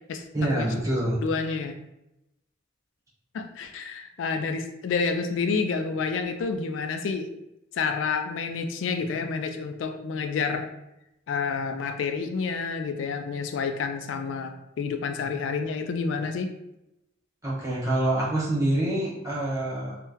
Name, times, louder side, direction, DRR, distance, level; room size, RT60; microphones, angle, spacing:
voice 1, 0.3-1.2 17.4-20.0, right 1 dB, 15° right, -6 dB, 0.9 m, -26 dB
voice 2, 1.2-1.7 3.3-7.3 7.7-10.7 11.3-16.5, left 5 dB, 75° left, 7 dB, 0.3 m, -29 dB
2.8 x 2.1 x 3.6 m, 0.89 s
head